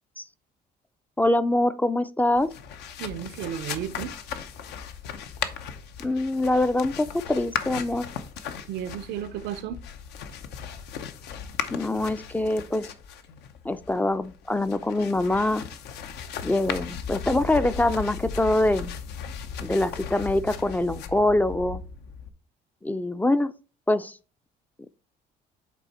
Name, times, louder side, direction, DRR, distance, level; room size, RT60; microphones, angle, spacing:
voice 1, 1.2-2.5 6.0-8.1 11.7-12.9 13.6-15.6 16.4-18.9 19.6-21.8 22.8-23.5 23.9-24.2, left 1 dB, 10° left, 0.3 m, -24 dB
sound 1, 2.3-22.3, left 7 dB, 80° left, 0.7 m, -37 dB
voice 2, 3.0-4.1 8.7-9.8, right 10 dB, 80° right, 0.6 m, -33 dB
8.2 x 3.5 x 4.1 m
cardioid pair, 110°, 17 cm